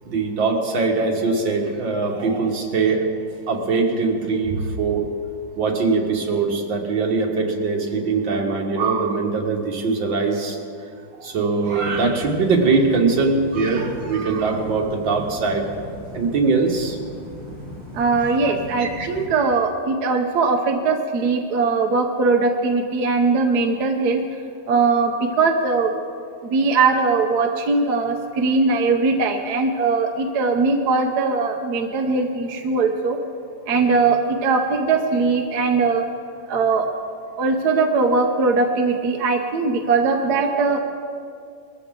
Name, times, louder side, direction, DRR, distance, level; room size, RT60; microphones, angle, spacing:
voice 1, 0.1-3.1 3.5-5.1 5.6-10.6 11.1-15.7 16.1-17.0 18.2-18.4 18.8-19.1, right 4 dB, 75° right, 2 dB, 2.2 m, -22 dB
sound 1, 11.6-19.3, left 1 dB, 85° left, 5.1 m, -38 dB
voice 2, 17.9-24.2 24.7-26.0 26.4-33.2 33.7-36.1 36.5-36.9 37.4-40.8, right 4 dB, 60° right, 3 dB, 1.4 m, -20 dB
21.0 x 15.0 x 3.7 m, 2.3 s
omnidirectional pair, 2.0 m